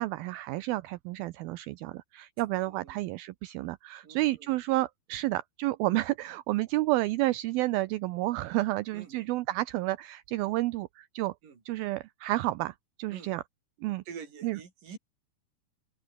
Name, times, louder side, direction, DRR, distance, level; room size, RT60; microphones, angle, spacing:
voice 1, 0.0-11.3 11.7-13.4 13.8-14.0 14.4-14.6, right 18 dB, 80° right, 2.4 m, -30 dB
voice 2, 4.0-4.5 8.9-9.3 11.4-11.6 13.1-13.3 14.1-15.0, right 6 dB, 55° right, 5.9 m, -46 dB
open air
omnidirectional pair, 4.5 m